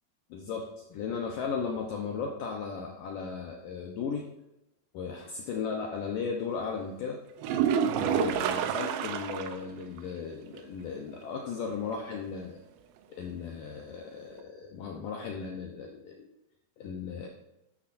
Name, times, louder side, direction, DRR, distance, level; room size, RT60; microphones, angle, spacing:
voice 1, 0.3-4.2 4.9-7.2 8.0-12.6 13.1-16.3 16.8-17.3, left 5 dB, 75° left, 0 dB, 2.0 m, -36 dB
sound 1, 7.4-9.7 10.0-10.1 10.5-10.6 14.4-14.5, right 8 dB, 80° right, 3.0 m, -28 dB
13.0 x 12.0 x 2.6 m, 0.92 s
omnidirectional pair, 5.2 m